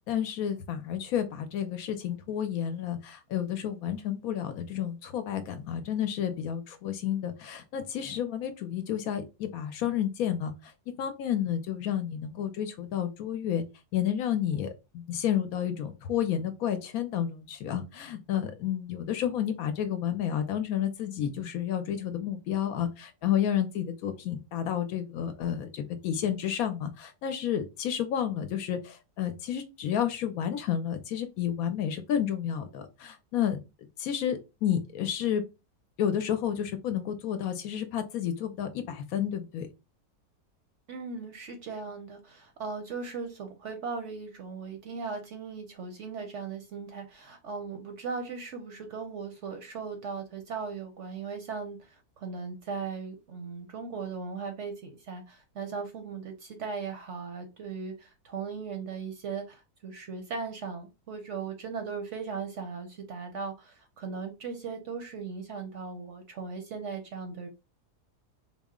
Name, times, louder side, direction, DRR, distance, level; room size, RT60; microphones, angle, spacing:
voice 1, 0.1-10.5 11.0-13.6 13.9-33.6 34.0-35.4 36.0-39.7, left 9 dB, 70° left, 1.0 m, -31 dB
voice 2, 40.9-67.5, right 5 dB, 60° right, 0.8 m, -38 dB
4.1 x 2.0 x 3.6 m
omnidirectional pair, 1.7 m